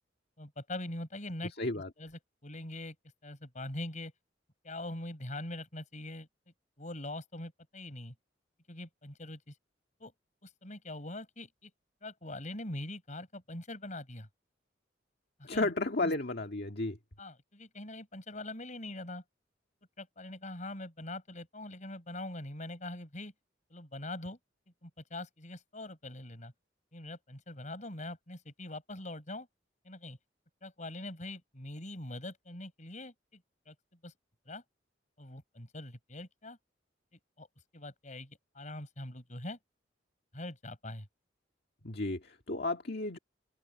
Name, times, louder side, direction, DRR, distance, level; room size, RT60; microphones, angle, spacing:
voice 1, 0.4-3.0 3.2-4.1 4.6-6.3 6.8-8.1 8.7-9.5 10.0-10.1 10.4-11.7 12.0-14.3 15.4-15.7 16.0-16.1 17.2-19.2 20.0-23.3 23.7-24.4 24.8-26.5 26.9-29.5 29.9-30.2 30.6-33.4 33.7-33.8 34.0-34.1 34.5-34.6 35.2-36.6 37.4-37.5 37.7-39.6 40.3-41.1, left 1 dB, 40° left, 6.9 m, -43 dB
voice 2, 1.6-1.9 15.4-17.0 41.8-43.2, left 2 dB, 55° left, 1.9 m, -33 dB
head